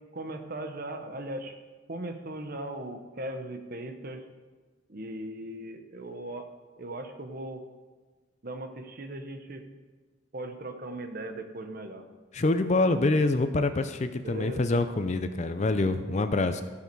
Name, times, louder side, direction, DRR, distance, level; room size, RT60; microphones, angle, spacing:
voice 1, 0.1-1.5 1.9-4.2 4.9-6.5 6.8-7.6 8.4-9.6 10.3-12.0 14.2-14.6, right 1 dB, 50° right, 7 dB, 1.0 m, -38 dB
voice 2, 12.3-16.6, left 2 dB, 35° left, 10 dB, 0.5 m, -26 dB
16.0 x 5.8 x 4.7 m, 1.3 s
head